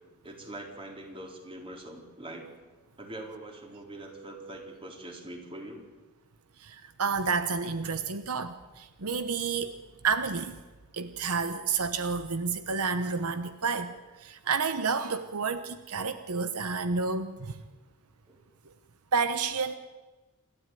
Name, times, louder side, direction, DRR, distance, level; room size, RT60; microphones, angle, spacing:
voice 1, 0.2-2.5 3.0-5.8 18.3-18.4, right 1 dB, 25° right, 2 dB, 4.0 m, -43 dB
voice 2, 6.6-9.7 10.0-10.6 10.9-17.6 19.1-19.7, right 5 dB, 85° right, 11 dB, 1.1 m, -30 dB
28.0 x 13.0 x 9.2 m, 1.2 s
head